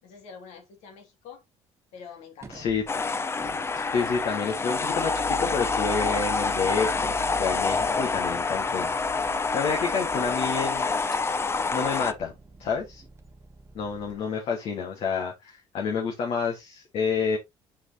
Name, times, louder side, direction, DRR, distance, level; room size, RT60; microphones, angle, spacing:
voice 1, 0.0-1.4 1.9-2.7, left 6 dB, 85° left, 2.6 m, -46 dB
sound 1, 2.4-14.2, right 4 dB, 25° right, 1.0 m, -44 dB
voice 2, 2.5-2.8 3.7-7.1 7.4-8.9 9.5-10.9 11.7-12.3 12.6-13.0 13.7-17.4, left 5 dB, 60° left, 1.9 m, -29 dB
sound 2, 2.9-12.1, left 4 dB, 20° left, 0.6 m, -27 dB
6.6 x 6.0 x 3.0 m
cardioid pair, 105°, 11 cm